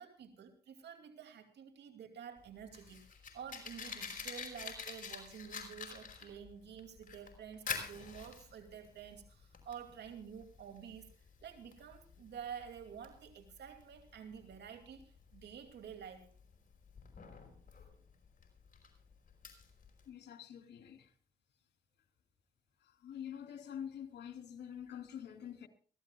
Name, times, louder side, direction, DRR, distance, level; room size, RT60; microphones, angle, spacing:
voice 1, 0.0-3.0 3.3-11.1 11.4-16.3, right 8 dB, 75° right, 2.5 m, -50 dB
Fire, 2.4-20.1, left 5 dB, 50° left, 5.3 m, -48 dB
voice 2, 20.1-21.1 22.8-25.7, left 9 dB, 75° left, 2.9 m, -46 dB
23.5 x 15.5 x 2.3 m
supercardioid pair, 55°, 18 cm